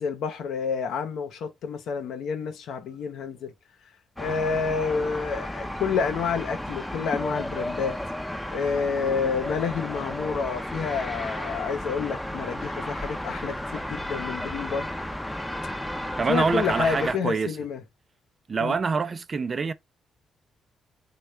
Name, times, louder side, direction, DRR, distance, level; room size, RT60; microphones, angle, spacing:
voice 1, 0.0-3.5 4.2-8.0 8.5-14.9 16.3-17.8 18.6-18.8, left 5 dB, 80° left, 0.8 m, -29 dB
sound 1, 4.2-17.1, left 1 dB, 5° left, 0.6 m, -33 dB
voice 2, 16.2-17.6 18.5-19.7, right 4 dB, 45° right, 0.5 m, -26 dB
3.4 x 2.3 x 3.1 m
supercardioid pair, 70°, 0 cm